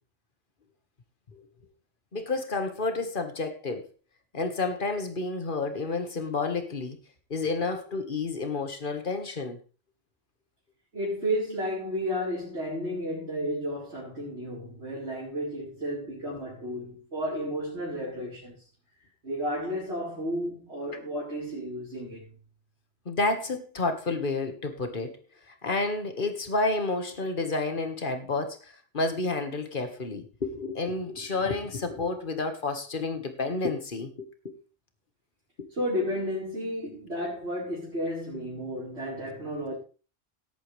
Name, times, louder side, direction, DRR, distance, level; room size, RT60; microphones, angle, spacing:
voice 1, 2.1-3.9 4.3-7.0 7.3-9.6 23.1-25.2 25.6-34.5, left 3 dB, 50° left, 1.8 m, -30 dB
voice 2, 10.9-18.6 19.2-22.2 35.7-39.8, equal, 85° right, 4.8 m, -32 dB
17.5 x 8.7 x 3.4 m
omnidirectional pair, 1.1 m